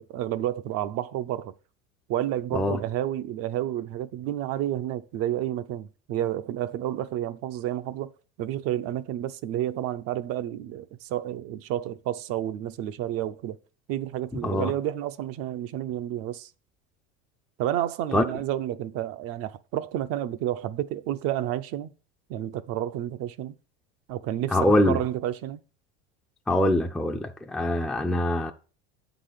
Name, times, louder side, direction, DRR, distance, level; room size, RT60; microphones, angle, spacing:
voice 1, 0.0-1.5 2.1-8.1 8.4-13.6 13.9-16.5 17.6-21.9 22.3-23.6 24.1-25.6, right 12 dB, 55° right, 0.7 m, -30 dB
voice 2, 14.4-14.7 18.1-18.2 24.5-25.0 26.5-28.5, left 1 dB, ahead, 0.5 m, -23 dB
7.9 x 4.0 x 6.7 m
supercardioid pair, 120°, 29 cm